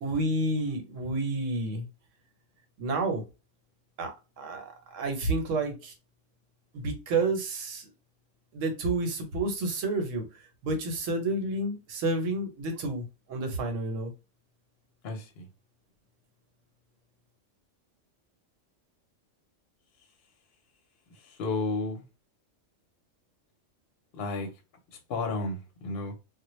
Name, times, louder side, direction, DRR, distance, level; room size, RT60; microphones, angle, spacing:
voice 1, 0.0-1.9 2.8-3.2 4.0-4.6 4.9-5.9 6.7-7.8 8.5-10.3 10.6-14.1, right 2 dB, 80° right, 1.1 m, -30 dB
voice 2, 15.0-15.4 21.4-22.0 24.2-24.5 25.1-26.1, left 3 dB, 60° left, 0.8 m, -32 dB
2.1 x 2.1 x 3.0 m
omnidirectional pair, 1.3 m